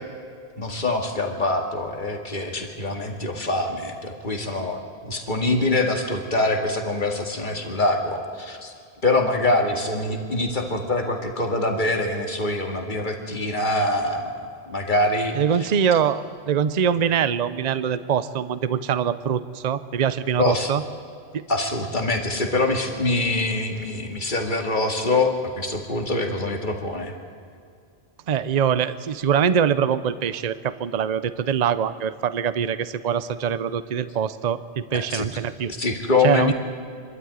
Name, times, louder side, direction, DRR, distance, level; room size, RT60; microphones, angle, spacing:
voice 1, 0.6-8.7 9.0-15.7 20.4-20.7 21.5-27.1 34.9-35.3 35.7-36.5, left 2 dB, 45° left, 3 dB, 2.2 m, -24 dB
voice 2, 15.3-20.8 21.3-21.4 28.3-34.6 34.9-35.7 36.2-36.5, right 8 dB, 45° right, 13 dB, 0.7 m, -23 dB
25.5 x 12.5 x 9.5 m, 2.3 s
omnidirectional pair, 1.2 m